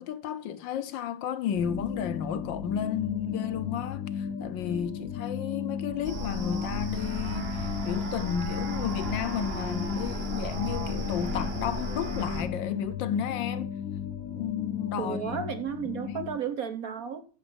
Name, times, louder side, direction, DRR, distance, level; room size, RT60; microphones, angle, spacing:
voice 1, 0.0-13.8 14.4-15.4 16.0-16.3, left 9 dB, 70° left, 1.4 m, -33 dB
sound 1, 1.5-16.4, left 8 dB, 55° left, 1.1 m, -35 dB
sound 2, 6.0-12.4, right 2 dB, 35° right, 1.3 m, -35 dB
voice 2, 15.0-17.2, right 7 dB, 55° right, 1.2 m, -33 dB
14.0 x 6.8 x 5.2 m
omnidirectional pair, 2.2 m